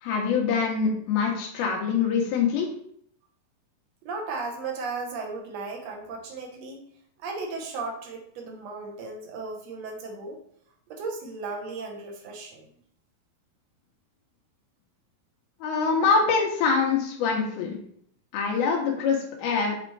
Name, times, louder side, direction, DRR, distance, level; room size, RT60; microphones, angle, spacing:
voice 1, 0.0-2.7 15.6-17.8 18.3-19.8, left 5 dB, 90° left, -1 dB, 2.9 m, -24 dB
voice 2, 4.0-6.9 7.2-10.4 10.9-12.7, right 3 dB, 65° right, 2 dB, 1.7 m, -35 dB
8.1 x 4.2 x 3.3 m, 0.65 s
omnidirectional pair, 4.3 m